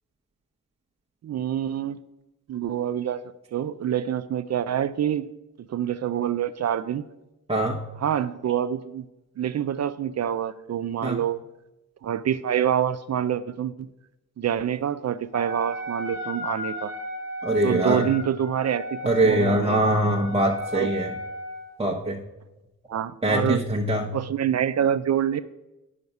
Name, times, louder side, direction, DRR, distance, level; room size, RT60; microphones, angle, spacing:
voice 1, 1.2-2.0 2.5-3.2 3.5-5.2 5.7-7.1 8.0-9.1 9.4-11.4 12.0-13.9 14.4-16.9 17.6-19.0 19.2-19.8 20.7-20.9 22.9-23.6 24.1-25.4, right 9 dB, 50° right, 13 dB, 0.4 m, -26 dB
Wind instrument woodwind instrument, 15.3-21.8, left 1 dB, 50° left, 1.4 m, -35 dB
voice 2, 17.4-18.0 19.0-21.1 21.8-22.2 23.2-24.1, right 1 dB, 15° right, -2 dB, 0.9 m, -23 dB
9.5 x 5.8 x 5.4 m, 0.97 s
cardioid pair, 105°, 35 cm